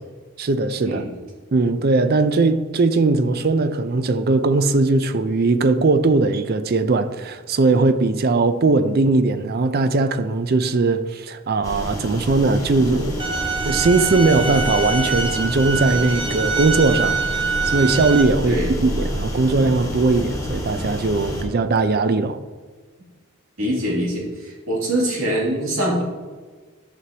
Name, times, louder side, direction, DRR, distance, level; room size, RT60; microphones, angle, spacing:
voice 1, 0.4-1.0 1.5-13.2 13.6-22.4, right 3 dB, 45° right, 0.5 m, -19 dB
sound 1, 11.6-21.4, equal, 15° left, 1.4 m, -29 dB
sound 2, 13.2-18.2, right 4 dB, 25° right, 0.9 m, -25 dB
voice 2, 23.6-26.0, right 1 dB, 80° right, 2.6 m, -23 dB
11.0 x 6.1 x 2.8 m
head